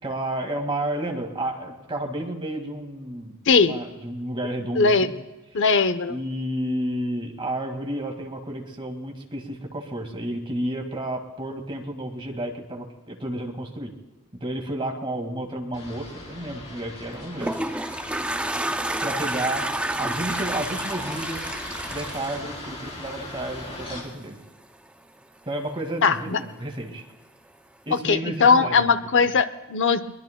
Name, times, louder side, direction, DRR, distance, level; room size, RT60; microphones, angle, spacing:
voice 1, 0.0-5.1 6.1-13.9 14.3-17.6 19.0-19.7 20.0-21.5 21.9-24.4 25.5-27.0 27.9-29.1, right 1 dB, 25° right, 2 dB, 1.9 m, -31 dB
voice 2, 4.8-5.1 5.5-6.2 26.0-26.4 28.0-30.0, left 5 dB, 60° left, 11 dB, 0.8 m, -19 dB
sound 1, 15.7-24.0, left 2 dB, 30° left, 3.7 m, -39 dB
Toilet flush, 17.0-23.4, right 1 dB, 5° right, 0.4 m, -30 dB
22.5 x 21.0 x 2.2 m, 1.2 s
head